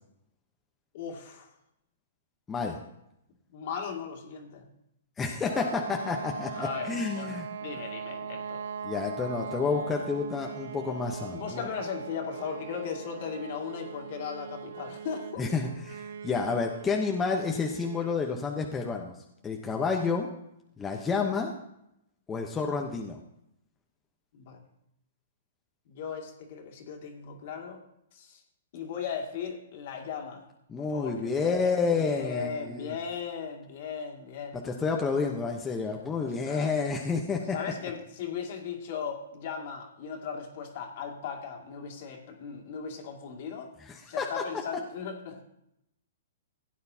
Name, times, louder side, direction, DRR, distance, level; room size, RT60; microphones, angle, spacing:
voice 1, 0.9-1.5 3.5-4.7 6.5-8.6 11.3-15.4 24.3-24.6 25.9-27.8 28.1-28.4 28.7-30.5 30.9-34.6 36.2-36.7 37.5-43.7 44.1-45.4, left 6 dB, 50° left, 2 dB, 2.2 m, -37 dB
voice 2, 5.2-7.5 8.8-11.7 15.4-19.1 19.4-20.3 20.8-21.5 22.3-23.2 30.7-32.9 34.6-37.5 43.9-44.3, left 4 dB, 15° left, 1 dB, 0.9 m, -30 dB
sound 1, 5.5-18.3, right 6 dB, 70° right, 0.6 m, -40 dB
16.0 x 9.4 x 2.8 m, 0.80 s
hypercardioid pair, 150°, 0 cm